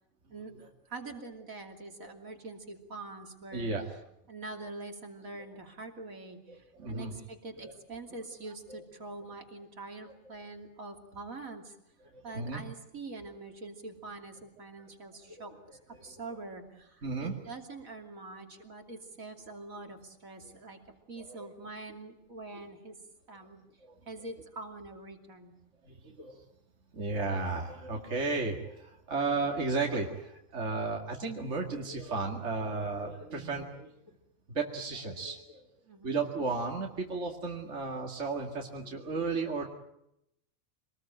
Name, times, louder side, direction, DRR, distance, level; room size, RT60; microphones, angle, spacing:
voice 1, 0.3-4.0 4.3-11.7 12.2-15.5 15.9-20.8 21.1-23.0 23.3-23.6 24.0-25.6 35.8-36.2, right 3 dB, 75° right, 3 dB, 3.3 m, -45 dB
voice 2, 3.5-3.8 6.5-7.1 7.6-7.7 8.7-8.8 12.1-12.6 17.0-17.4 21.3-21.5 23.9-24.0 25.8-26.4 26.9-33.9 34.5-35.6 36.0-39.7, right 3 dB, 55° right, 1 dB, 2.5 m, -34 dB
26.0 x 20.0 x 8.9 m, 0.82 s
omnidirectional pair, 1.4 m